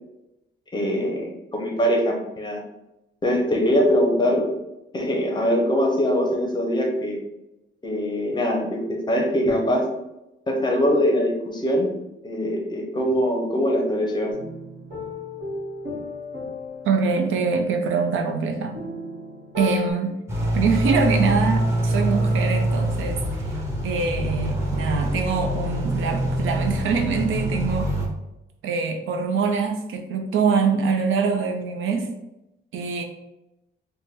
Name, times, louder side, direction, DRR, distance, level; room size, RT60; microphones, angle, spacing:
voice 1, 0.7-2.6 3.2-4.5 4.9-7.2 7.8-9.9 10.5-11.9 12.2-14.3, equal, 20° left, 1 dB, 0.6 m, -22 dB
sound 1, 14.3-19.9, left 3 dB, 60° right, 1.4 m, -35 dB
voice 2, 16.8-18.8 19.6-20.2 20.5-23.5 23.8-27.9 28.6-32.1 32.7-33.0, right 5 dB, 75° right, 4 dB, 0.6 m, -24 dB
sound 2, 20.3-28.1, right 1 dB, 15° right, 0.8 m, -24 dB
3.4 x 2.1 x 4.2 m, 0.91 s
wide cardioid pair, 165°, 20 cm